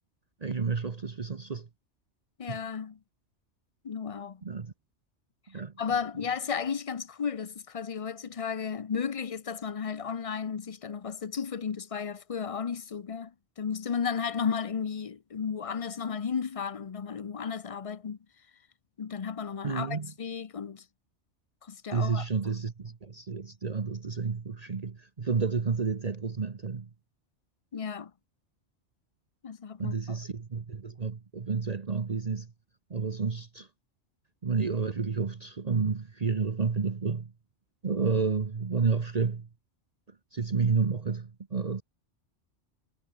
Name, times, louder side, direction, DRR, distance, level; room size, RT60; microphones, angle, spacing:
voice 1, 0.4-1.7 2.5-2.6 4.4-4.7 5.5-5.7 19.6-20.1 21.9-26.9 29.8-32.5 32.9-33.7 34.4-37.3 37.8-39.5 40.3-41.8, right 5 dB, 35° right, 1.0 m, -30 dB
voice 2, 2.4-3.0 3.8-4.4 5.8-18.2 19.0-20.8 21.6-22.3 27.7-28.1 29.4-30.2, left 6 dB, 35° left, 0.6 m, -34 dB
omnidirectional pair, 1.2 m